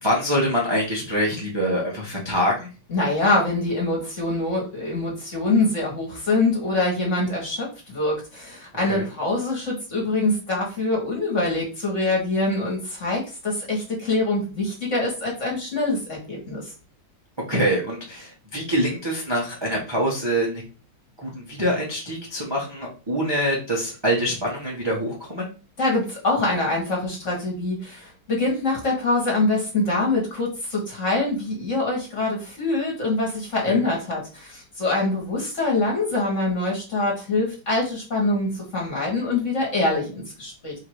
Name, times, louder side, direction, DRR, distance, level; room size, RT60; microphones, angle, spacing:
voice 1, 0.0-2.7 8.9-9.0 17.5-20.6 21.2-25.5 33.7-33.8, equal, 20° right, -4 dB, 0.6 m, -25 dB
voice 2, 2.9-16.7 25.8-40.7, left 2 dB, 40° left, -2 dB, 1.7 m, -24 dB
3.7 x 2.9 x 4.7 m, 0.35 s
omnidirectional pair, 2.3 m